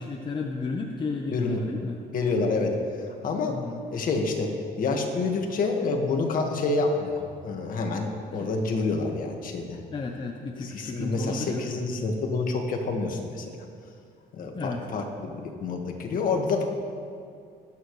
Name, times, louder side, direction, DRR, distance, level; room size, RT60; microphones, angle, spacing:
voice 1, 0.0-2.0 3.4-3.8 8.3-8.5 9.9-11.7 14.5-14.8, left 3 dB, 30° left, 2 dB, 0.9 m, -33 dB
voice 2, 2.1-2.8 3.2-3.6 3.9-4.5 4.8-9.8 10.6-13.4 14.3-16.6, left 3 dB, 55° left, 2 dB, 1.8 m, -28 dB
23.0 x 8.9 x 3.3 m, 2.3 s
cardioid pair, 110°, 17 cm